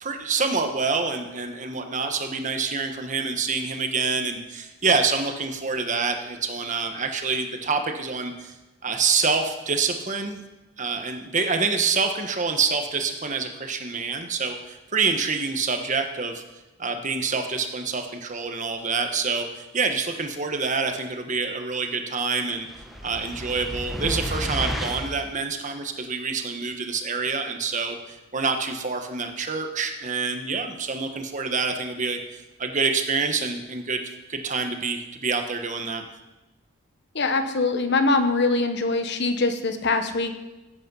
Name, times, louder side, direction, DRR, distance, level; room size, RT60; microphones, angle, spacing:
voice 1, 0.0-8.5 8.8-10.4 10.8-16.4 16.8-22.7 23.0-34.0 34.3-36.0, right 4 dB, 35° right, 5 dB, 1.3 m, -27 dB
sound 1, 22.7-25.3, equal, ahead, 1.1 m, -31 dB
voice 2, 37.1-40.3, left 3 dB, 55° left, 7 dB, 1.2 m, -23 dB
16.0 x 8.7 x 5.6 m, 1.1 s
head